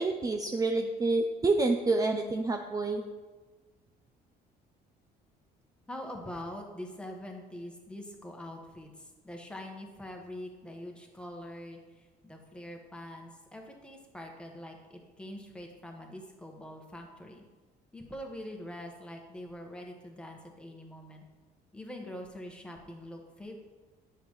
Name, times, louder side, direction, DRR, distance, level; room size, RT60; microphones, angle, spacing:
voice 1, 0.0-3.0, right 3 dB, 20° right, 4 dB, 0.5 m, -28 dB
voice 2, 5.9-17.4 17.9-21.2 21.7-23.6, left 1 dB, 5° left, 1 dB, 1.4 m, -44 dB
9.7 x 7.0 x 3.2 m, 1.3 s
cardioid pair, 110°, 17 cm